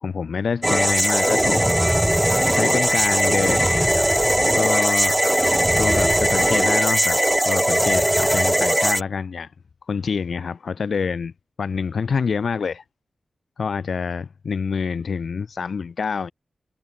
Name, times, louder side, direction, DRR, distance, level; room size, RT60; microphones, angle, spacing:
voice 1, 0.0-1.7 2.5-4.1 4.5-5.2 5.8-7.2 7.5-9.5 9.9-11.3 11.6-12.8 13.6-16.3, left 5 dB, 70° left, 1.2 m, -26 dB
sound 1, 0.6-9.0, right 1 dB, 10° right, 1.4 m, -19 dB
wide cardioid pair, 85°, 0 cm